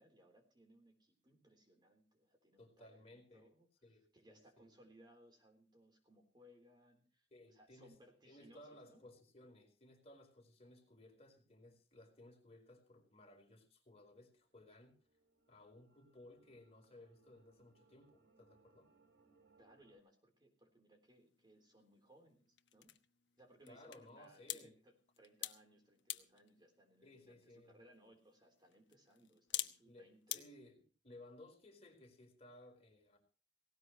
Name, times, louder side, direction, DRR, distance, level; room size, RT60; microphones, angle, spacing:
voice 1, 0.0-3.7 4.1-9.0 19.6-22.9 23.4-30.5, right 1 dB, 25° right, 3 dB, 3.6 m, -66 dB
voice 2, 2.6-3.5 3.8-4.7 7.3-7.9 8.2-15.0 15.5-18.9 23.7-24.7 27.0-27.8 29.8-33.2, left 1 dB, 35° left, 3 dB, 4.3 m, -60 dB
sound 1, 14.2-20.0, right 3 dB, 85° right, 1.8 m, -73 dB
sound 2, 21.0-30.4, left 13 dB, 90° left, 1.1 m, -50 dB
18.5 x 18.0 x 3.1 m, 0.37 s
head